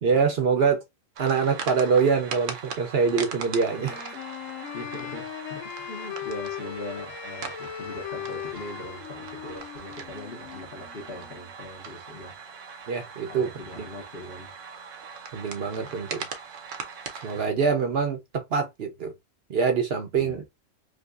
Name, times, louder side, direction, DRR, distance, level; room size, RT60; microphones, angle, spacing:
voice 1, 0.0-0.8 1.2-4.2 12.9-13.5 13.8-13.9 15.3-16.2 17.2-19.1 19.5-20.5, right 5 dB, 55° right, 0.9 m, -24 dB
sound 1, 1.2-17.5, right 6 dB, 75° right, 1.1 m, -40 dB
Wind instrument woodwind instrument, 3.7-11.5, left 10 dB, 90° left, 1.1 m, -38 dB
voice 2, 4.7-12.6 13.3-14.5 15.8-15.9 20.1-20.4, left 1 dB, 50° left, 1.4 m, -41 dB
5.0 x 2.3 x 2.4 m
omnidirectional pair, 1.3 m